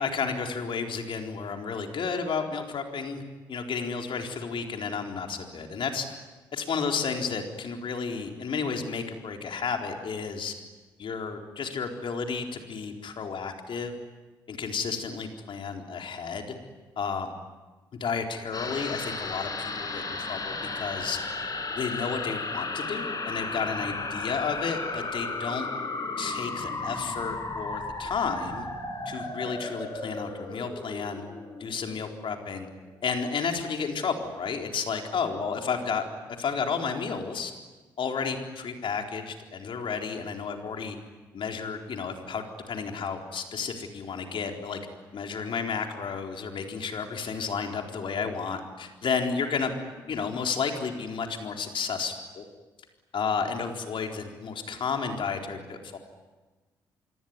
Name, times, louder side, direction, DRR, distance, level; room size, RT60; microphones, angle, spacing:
voice 1, 0.0-3.2 3.5-6.1 6.5-10.5 11.0-13.9 14.5-16.4 17.0-17.3 18.0-21.2 21.8-25.7 26.2-28.6 29.1-31.2 31.6-32.7 33.0-36.0 36.4-37.5 38.0-41.0 41.3-44.8 45.1-49.7 50.1-52.4 53.1-56.0, left 5 dB, 55° left, 3 dB, 4.2 m, -32 dB
sound 1, 18.5-33.2 33.5-33.6, left 3 dB, 40° left, 5.9 m, -35 dB
26.0 x 23.5 x 9.7 m, 1.2 s
hypercardioid pair, 45°, 11 cm